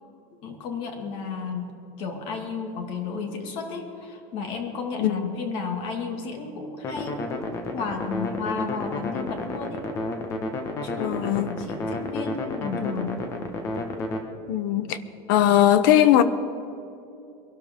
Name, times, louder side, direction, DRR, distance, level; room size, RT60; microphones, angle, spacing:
voice 1, 0.4-9.9 10.8-13.3, left 5 dB, 45° left, 2.2 m, -33 dB
sound 1, 6.8-14.2, left 2 dB, 25° left, 1.2 m, -31 dB
voice 2, 11.0-11.5 14.5-15.0 15.3-16.2, left 11 dB, 65° left, 0.9 m, -19 dB
23.0 x 12.5 x 3.7 m
cardioid pair, 175°, 12 cm